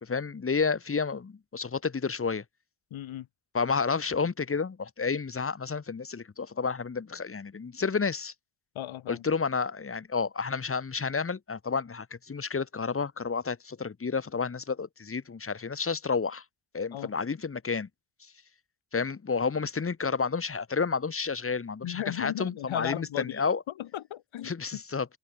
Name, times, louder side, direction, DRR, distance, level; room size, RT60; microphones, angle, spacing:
voice 1, 0.0-2.4 3.5-8.3 9.1-16.4 16.7-17.9 18.9-23.6 24.4-25.1, left 5 dB, 30° left, 2.0 m, -30 dB
voice 2, 2.9-3.3 8.7-9.2 16.9-17.1 21.8-24.8, left 12 dB, 85° left, 4.0 m, -36 dB
cardioid pair, 110°, 46 cm